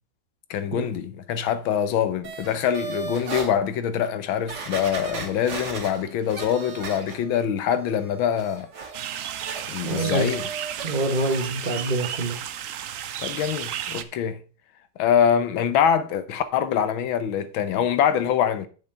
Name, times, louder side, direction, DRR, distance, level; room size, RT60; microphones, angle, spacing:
voice 1, 0.5-8.7 9.7-10.4 13.2-14.4 15.0-18.7, left 8 dB, 80° left, 1.6 m, -24 dB
sound 1, 2.2-3.5 4.0-4.1 4.5-7.4 7.8-10.9 11.2-11.5 11.9-12.0, right 4 dB, 60° right, 2.2 m, -36 dB
sound 2, 8.9-14.0, right 10 dB, 85° right, 0.7 m, -33 dB
voice 2, 9.8-10.3 10.8-12.4, right 2 dB, 30° right, 1.1 m, -26 dB
7.3 x 6.1 x 5.4 m
omnidirectional pair, 2.2 m